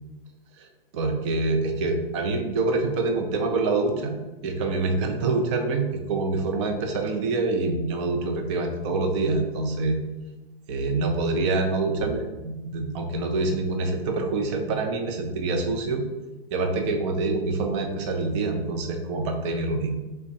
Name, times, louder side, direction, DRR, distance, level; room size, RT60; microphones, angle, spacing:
voice 1, 0.9-4.2 4.4-10.0 10.7-16.0 16.5-19.9, right 3 dB, 30° right, 4 dB, 0.6 m, -26 dB
3.3 x 2.2 x 3.9 m, 1.1 s
figure-of-eight pair, 110°, 29 cm